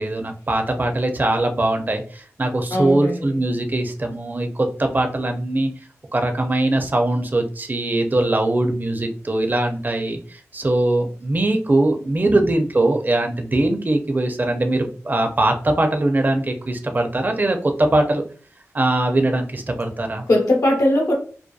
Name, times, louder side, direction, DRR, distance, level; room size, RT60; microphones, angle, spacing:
voice 1, 0.0-5.7 6.1-18.2 18.7-20.3, right 2 dB, 35° right, 5 dB, 0.4 m, -21 dB
voice 2, 2.7-3.4 12.2-12.4 20.3-21.1, left 1 dB, 85° left, -1 dB, 0.9 m, -19 dB
2.6 x 2.2 x 2.2 m, 0.42 s
cardioid pair, 45°, 6 cm